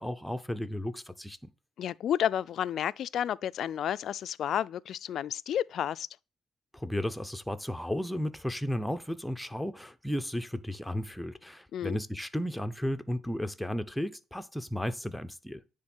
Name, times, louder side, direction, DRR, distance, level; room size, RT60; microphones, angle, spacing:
voice 1, 0.0-1.5 6.7-15.6, equal, 5° left, 0.8 m, -34 dB
voice 2, 1.8-6.1 11.7-12.0, left 10 dB, 60° left, 0.3 m, -31 dB
9.7 x 3.6 x 6.1 m
supercardioid pair, 85°, 0 cm